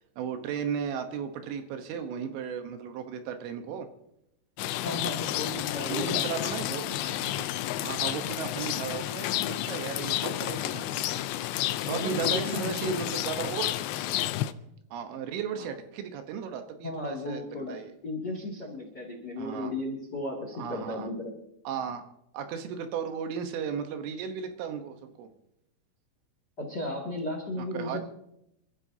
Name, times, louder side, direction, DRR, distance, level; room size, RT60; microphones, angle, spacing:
voice 1, 0.2-3.9 5.9-7.5 7.8-11.0 11.8-13.7 14.9-17.9 19.4-19.7 20.6-21.1 21.7-22.0 22.3-25.3 27.6-28.0, right 7 dB, 80° right, 7 dB, 3.5 m, -35 dB
Rain, 4.6-14.5, left 14 dB, 85° left, 2.5 m, -31 dB
voice 2, 4.8-6.2 11.9-12.9 16.8-17.8 18.0-21.3 26.6-28.0, left 2 dB, 35° left, 0 dB, 1.8 m, -35 dB
28.0 x 13.5 x 2.8 m, 0.81 s
omnidirectional pair, 5.8 m